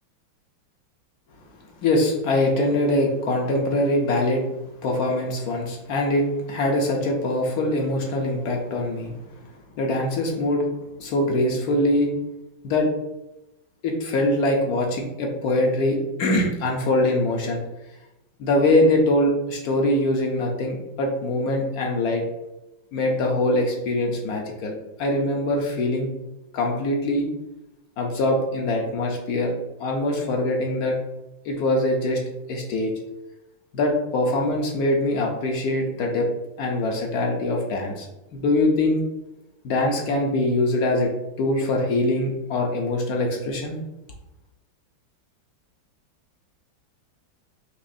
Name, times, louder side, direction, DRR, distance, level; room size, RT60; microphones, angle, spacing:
voice 1, 1.8-4.4 4.8-9.2 9.8-10.7 11.0-12.1 12.6-12.9 13.8-17.6 18.4-22.2 22.9-26.1 26.5-27.3 28.0-29.5 29.8-31.0 31.4-32.2 32.5-32.9 33.7-36.3 36.6-38.1 38.3-39.0 39.6-41.1 41.4-43.8, left 1 dB, 70° left, 1 dB, 0.9 m, -23 dB
5.0 x 2.9 x 2.6 m, 0.95 s
omnidirectional pair, 2.2 m